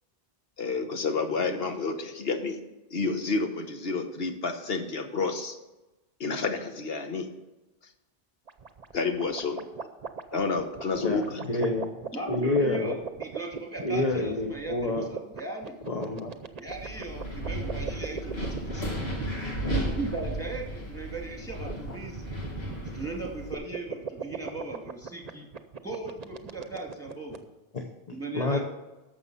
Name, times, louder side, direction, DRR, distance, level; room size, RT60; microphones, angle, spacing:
voice 1, 0.6-2.6 2.9-5.6 6.2-7.3 8.9-9.6 10.3-11.4, left 4 dB, 70° left, 6 dB, 1.3 m, -29 dB
sound 1, 8.5-27.4, right 6 dB, 45° right, 0.8 m, -39 dB
voice 2, 11.0-11.9 12.3-12.9 13.8-15.1 15.9-16.3 27.7-28.6, left 2 dB, 40° left, 2 dB, 1.1 m, -28 dB
voice 3, 12.1-15.8 16.6-19.0 19.8-22.4 22.9-25.5 25.8-27.5 28.1-28.6, right 2 dB, 5° left, -1 dB, 2.4 m, -38 dB
Wind, 16.7-23.5, right 1 dB, 90° left, 2.4 m, -34 dB
11.5 x 7.1 x 5.5 m, 1.0 s
omnidirectional pair, 1.0 m